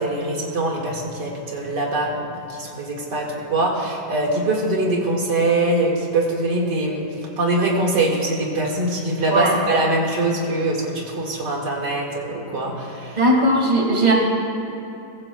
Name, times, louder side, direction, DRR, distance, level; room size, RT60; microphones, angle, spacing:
voice 1, 0.0-7.0 7.4-13.3, right 2 dB, 85° right, -2 dB, 2.6 m, -23 dB
voice 2, 13.2-14.1, right 1 dB, 25° right, -1 dB, 2.0 m, -17 dB
23.0 x 16.0 x 2.3 m, 2.8 s
omnidirectional pair, 1.8 m